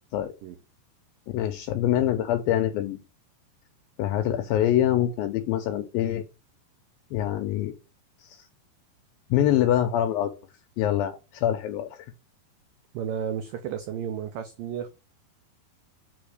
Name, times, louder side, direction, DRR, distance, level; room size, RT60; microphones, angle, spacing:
voice 1, 1.3-3.0 4.0-6.2 7.1-7.7 8.2-8.4 9.3-10.3 10.8-12.1, left 11 dB, 80° left, 2.1 m, -25 dB
voice 2, 12.9-14.9, right 8 dB, 90° right, 1.9 m, -32 dB
7.9 x 3.5 x 6.4 m
omnidirectional pair, 4.8 m